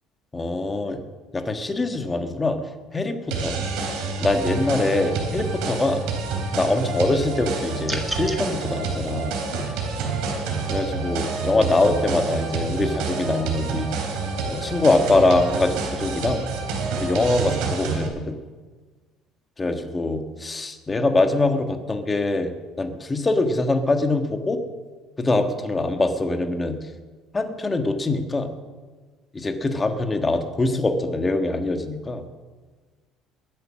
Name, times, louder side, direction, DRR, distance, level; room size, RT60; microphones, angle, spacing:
voice 1, 0.3-1.0 1.3-2.6 2.9-3.6 4.2-6.0 6.5-9.4 10.7-13.9 14.5-16.4 17.0-18.4 19.6-22.5 22.8-24.6 25.2-26.8 27.3-28.5 29.3-32.2, left 2 dB, 20° left, 6 dB, 1.6 m, -23 dB
sound 1, 3.3-18.1, right 4 dB, 85° right, 3.5 m, -28 dB
sound 2, 7.8-8.4, equal, 5° right, 1.8 m, -30 dB
21.5 x 8.6 x 6.4 m, 1.4 s
cardioid pair, 120°, 0 cm